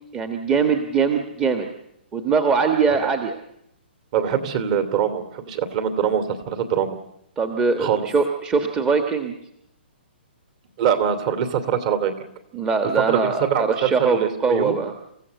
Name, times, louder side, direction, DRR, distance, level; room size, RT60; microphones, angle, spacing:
voice 1, 0.1-1.7 2.1-3.4 7.4-9.4 12.5-14.9, right 5 dB, 15° right, 5 dB, 1.4 m, -22 dB
voice 2, 4.1-6.9 7.8-8.0 10.8-12.1 12.9-14.8, right 8 dB, 40° right, 9 dB, 2.7 m, -23 dB
27.0 x 15.5 x 8.1 m, 0.80 s
hypercardioid pair, 155°, 6 cm